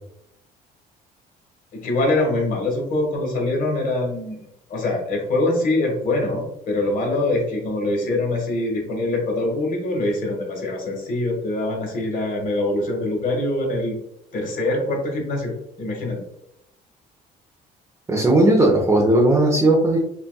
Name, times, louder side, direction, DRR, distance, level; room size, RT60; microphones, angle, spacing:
voice 1, 1.8-13.9 14.3-15.5 15.8-16.2, left 2 dB, 55° left, 1 dB, 1.5 m, -24 dB
voice 2, 18.1-20.0, right 1 dB, 15° right, -2 dB, 0.8 m, -16 dB
5.4 x 2.4 x 2.3 m, 0.78 s
cardioid pair, 110°, 17 cm